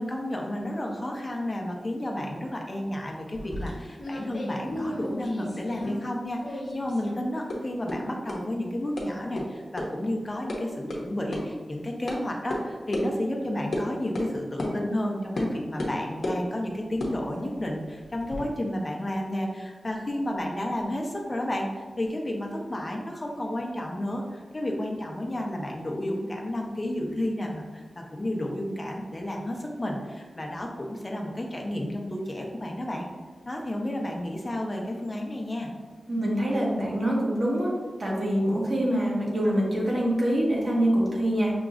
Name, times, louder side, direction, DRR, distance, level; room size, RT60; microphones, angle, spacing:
voice 1, 0.0-33.1 33.5-35.7, left 1 dB, 30° left, 0 dB, 0.7 m, -31 dB
sound 1, 3.3-6.1 6.4-7.1 7.5-7.6 7.9-8.0 8.3-8.4 9.0-9.1 9.4-9.5 9.8-9.9 10.2-10.6 10.9-11.0 11.3-11.4 12.1-12.2 12.5-12.6 12.9-13.1 13.7-13.9 14.1-14.3 14.6-14.7 15.4-15.5 15.8-16.4 16.9-18.4, left 1 dB, 65° left, 0.8 m, -33 dB
voice 2, 36.1-37.7 38.0-41.5, right 1 dB, 50° right, -4 dB, 1.2 m, -25 dB
6.0 x 2.9 x 2.5 m, 1.4 s
wide cardioid pair, 105°, 0 cm